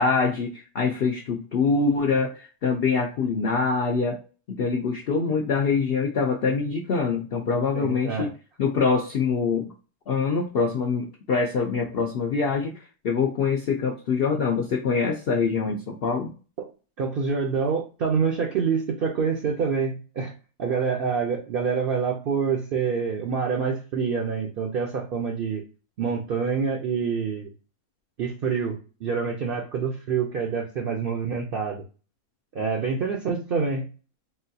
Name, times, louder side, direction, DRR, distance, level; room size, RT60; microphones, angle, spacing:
voice 1, 0.0-4.2 4.5-8.3 8.6-9.7 10.1-16.3, left 5 dB, 75° left, 2 dB, 0.5 m, -24 dB
voice 2, 7.7-8.3 16.6-16.7 17.0-20.3 20.6-25.6 26.0-27.5 28.2-31.8 32.5-33.9, right 5 dB, 60° right, 0 dB, 0.6 m, -26 dB
3.8 x 2.2 x 2.6 m, 0.35 s
omnidirectional pair, 1.5 m